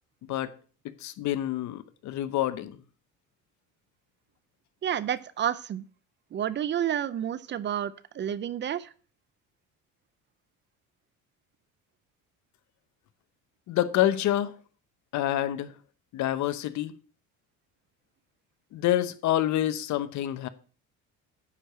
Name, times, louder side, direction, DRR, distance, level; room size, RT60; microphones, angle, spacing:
voice 1, 0.8-2.8 13.7-14.5 15.1-15.7 16.1-17.0 18.7-20.5, left 13 dB, 60° left, 0.9 m, -27 dB
voice 2, 4.8-5.8 6.3-8.9, right 10 dB, 35° right, 0.5 m, -30 dB
9.8 x 4.7 x 6.7 m
cardioid pair, 125°, 32 cm